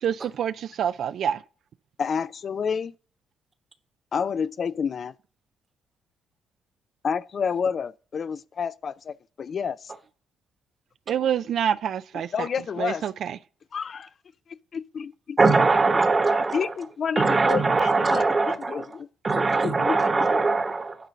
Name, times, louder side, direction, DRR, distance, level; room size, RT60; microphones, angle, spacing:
voice 1, 0.0-1.4 11.1-12.5 12.8-13.4, right 9 dB, 65° right, 0.3 m, -27 dB
voice 2, 2.0-2.9 4.1-5.1 7.0-9.9 12.3-13.1 13.7-14.1 14.7-15.4 15.9-16.0 16.3-19.1 19.4-20.4, left 6 dB, 50° left, 0.3 m, -30 dB
voice 3, 15.4-16.7 17.2-18.8 19.2-21.0, right 3 dB, 30° right, 1.1 m, -21 dB
9.1 x 3.8 x 6.7 m
cardioid pair, 90°, 0 cm